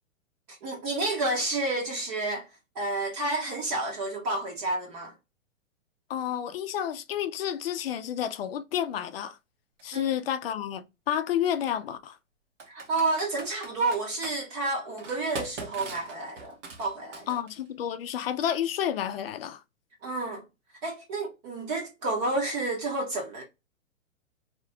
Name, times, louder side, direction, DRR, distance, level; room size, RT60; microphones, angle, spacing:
voice 1, 0.5-2.5 2.7-5.1 9.9-10.1 12.7-17.3 20.0-20.4 20.8-23.4, right 2 dB, 30° right, 0.8 m, -30 dB
voice 2, 6.1-9.4 9.8-12.2 17.3-19.6, left 10 dB, 45° left, 0.5 m, -30 dB
Computer keyboard, 9.8-9.9 11.5-11.7 12.6-14.4 15.0-17.7, right 4 dB, 65° right, 1.1 m, -41 dB
2.9 x 2.2 x 3.3 m
hypercardioid pair, 135°, 40 cm